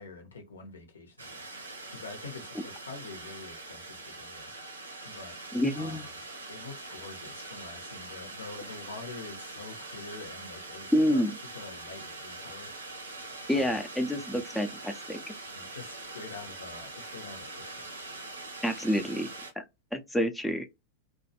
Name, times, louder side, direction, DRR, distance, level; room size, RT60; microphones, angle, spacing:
voice 1, 0.0-5.4 5.7-6.2 6.5-11.2 11.5-13.2 13.5-14.4 15.5-17.9 18.9-19.1, left 4 dB, 70° left, 0.7 m, -46 dB
sound 1, 1.2-19.5, right 2 dB, 75° right, 0.6 m, -43 dB
voice 2, 5.5-6.0 10.9-11.3 13.5-15.2 18.6-19.3 19.6-19.7 19.9-20.6, equal, 5° left, 0.3 m, -28 dB
2.3 x 2.1 x 2.7 m
figure-of-eight pair, 90°, 0 cm